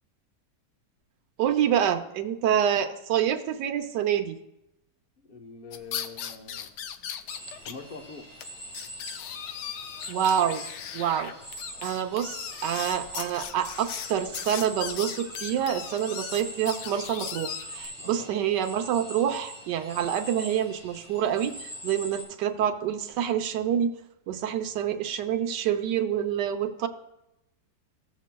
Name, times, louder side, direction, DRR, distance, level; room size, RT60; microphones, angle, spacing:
voice 1, 1.4-4.4 10.1-10.6 10.9-11.3 11.8-23.9 24.3-26.9, right 9 dB, 85° right, 7 dB, 1.3 m, -27 dB
voice 2, 5.3-6.7 7.6-8.3 18.0-18.4, left 4 dB, 40° left, 3 dB, 0.8 m, -43 dB
sound 1, 5.7-7.7 8.0-8.1 8.4-8.5 8.7-17.9, left 9 dB, 80° left, 1.2 m, -38 dB
sound 2, 7.3-22.2, equal, 60° left, 3.7 m, -43 dB
15.5 x 7.3 x 2.2 m, 0.88 s
omnidirectional pair, 1.8 m